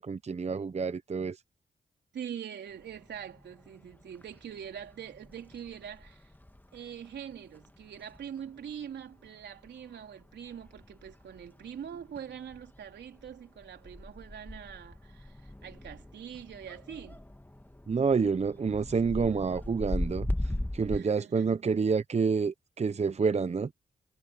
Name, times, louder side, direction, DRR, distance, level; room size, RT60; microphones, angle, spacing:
voice 1, 0.0-1.4 17.9-20.3 20.7-23.7, right 5 dB, 40° right, 0.8 m, -28 dB
voice 2, 2.1-6.3 6.7-17.2 20.9-21.5, right 8 dB, 80° right, 4.2 m, -43 dB
sound 1, 2.7-21.0, left 1 dB, 10° left, 1.7 m, -41 dB
supercardioid pair, 50°, 18 cm